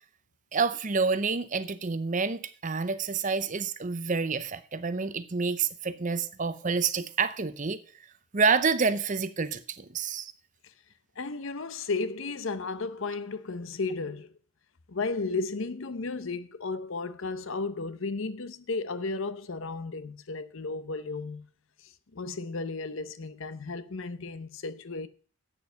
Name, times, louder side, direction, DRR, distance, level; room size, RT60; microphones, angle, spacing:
voice 1, 0.5-7.8 8.3-10.3, right 5 dB, 35° right, 0.6 m, -28 dB
voice 2, 11.2-14.3 14.9-21.5 21.8-25.1, left 3 dB, 60° left, 0.7 m, -34 dB
8.4 x 7.0 x 6.8 m
head